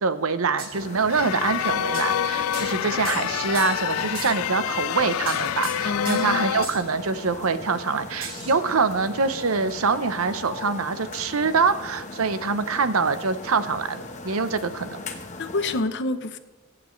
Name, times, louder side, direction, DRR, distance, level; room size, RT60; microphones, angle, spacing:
voice 1, 0.0-15.0, right 4 dB, 80° right, 12 dB, 0.7 m, -25 dB
sound 1, 0.6-0.7 1.9-2.1 2.5-2.8 3.1-3.9 4.2-4.4 5.3-6.4 6.6-6.8 8.2-8.6, right 3 dB, 45° right, 2.9 m, -37 dB
sound 2, 0.7-15.8, left 2 dB, 35° left, 1.1 m, -39 dB
sound 3, 1.1-6.7, left 10 dB, 75° left, 0.3 m, -27 dB
voice 2, 5.8-6.4 15.4-16.4, left 2 dB, 60° left, 10 dB, 0.8 m, -27 dB
24.0 x 8.6 x 3.2 m, 1.2 s
head